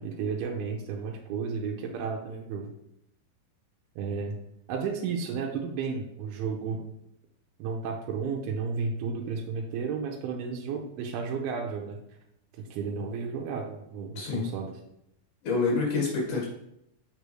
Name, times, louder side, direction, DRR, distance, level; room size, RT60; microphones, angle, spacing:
voice 1, 0.0-2.7 4.0-4.4 4.7-6.8 7.6-12.0 12.6-14.7, right 5 dB, 85° right, 0 dB, 2.6 m, -33 dB
voice 2, 14.2-14.5 15.4-16.5, left 4 dB, 60° left, -3 dB, 2.8 m, -27 dB
6.8 x 5.5 x 3.1 m, 0.79 s
omnidirectional pair, 4.5 m